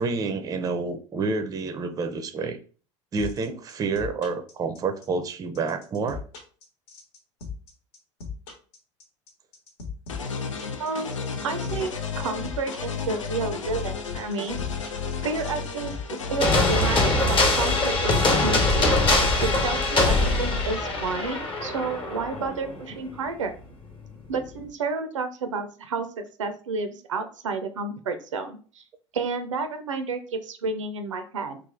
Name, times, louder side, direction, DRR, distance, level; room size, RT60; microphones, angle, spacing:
voice 1, 0.0-2.6 3.1-6.2, right 4 dB, 25° right, 8 dB, 0.5 m, -28 dB
sound 1, 3.2-19.9, left 6 dB, 60° left, 1.0 m, -38 dB
sound 2, 10.1-17.0, left 5 dB, 80° left, 0.4 m, -33 dB
voice 2, 10.8-11.1 11.4-11.9 12.2-14.6 15.2-18.2 18.4-18.9 19.4-23.5 24.3-26.1 26.4-28.8 29.1-31.6, right 4 dB, 75° right, 8 dB, 0.5 m, -30 dB
sound 3, 16.4-23.0, left 2 dB, 30° left, 1.0 m, -22 dB
3.2 x 2.3 x 3.6 m, 0.39 s
figure-of-eight pair, 70°, 16 cm